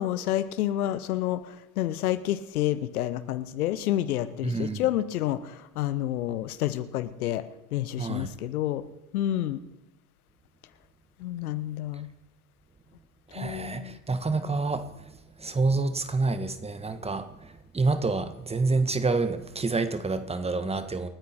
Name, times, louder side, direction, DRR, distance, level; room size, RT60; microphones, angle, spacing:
voice 1, 0.0-7.4 7.7-8.8 9.1-9.6 11.2-12.1 13.4-14.0, left 13 dB, 70° left, 14 dB, 1.2 m, -29 dB
voice 2, 4.4-4.8 8.0-8.3 13.3-21.1, right 3 dB, 15° right, 10 dB, 1.4 m, -28 dB
28.5 x 9.6 x 4.4 m, 0.96 s
hypercardioid pair, 80°, 45 cm